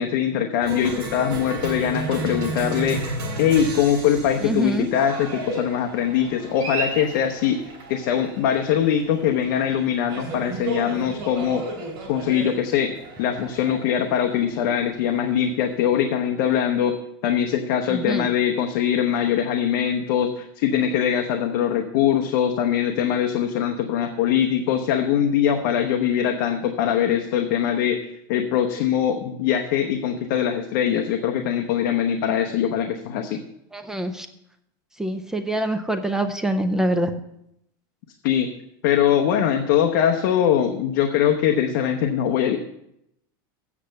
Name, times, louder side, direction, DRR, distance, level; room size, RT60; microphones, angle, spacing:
voice 1, 0.0-7.6 7.9-11.7 12.1-17.0 17.2-28.0 28.3-33.4 38.2-38.5 38.8-42.6, left 9 dB, 50° left, 4 dB, 0.8 m, -22 dB
Cheering, 0.6-15.8, right 2 dB, 40° right, 3.4 m, -33 dB
voice 2, 4.4-4.9 17.9-18.3 33.7-34.3 35.0-37.1, right 1 dB, 5° right, 7 dB, 0.4 m, -25 dB
8.4 x 6.5 x 6.7 m, 0.79 s
supercardioid pair, 165°, 12 cm